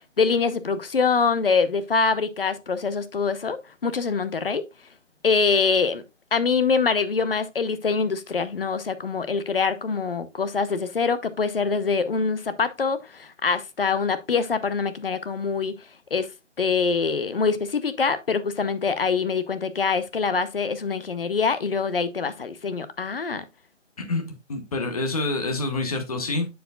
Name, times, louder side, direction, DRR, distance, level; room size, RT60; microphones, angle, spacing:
voice 1, 0.2-4.6 5.2-6.0 6.3-15.7 16.1-16.3 16.6-23.4, left 5 dB, 50° left, 0.8 m, -24 dB
voice 2, 24.5-26.5, left 2 dB, 30° left, 1.1 m, -27 dB
11.0 x 4.8 x 2.3 m
figure-of-eight pair, 150°, 37 cm